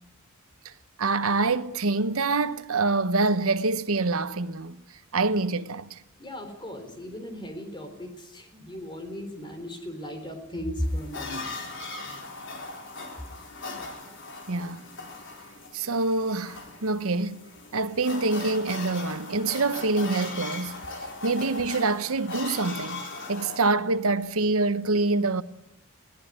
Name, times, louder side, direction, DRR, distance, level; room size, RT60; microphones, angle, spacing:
voice 1, 1.0-4.8 5.1-6.0 14.5-14.8 15.7-17.4 17.7-20.8 21.2-23.0 23.3-25.4, right 3 dB, 75° right, 1.0 m, -26 dB
voice 2, 6.2-11.5, equal, 20° left, 3.9 m, -36 dB
sound 1, 10.8-23.6, left 3 dB, 55° left, 4.3 m, -39 dB
21.0 x 17.5 x 9.7 m
head